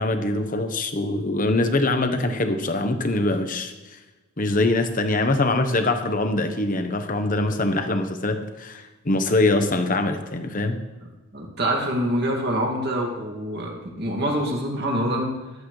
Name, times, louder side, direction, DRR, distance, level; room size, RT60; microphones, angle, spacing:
voice 1, 0.0-3.7 4.4-10.8, left 2 dB, 40° left, 7 dB, 1.0 m, -23 dB
voice 2, 11.3-15.3, equal, 50° right, 0 dB, 2.3 m, -25 dB
14.5 x 11.0 x 3.2 m, 1.2 s
head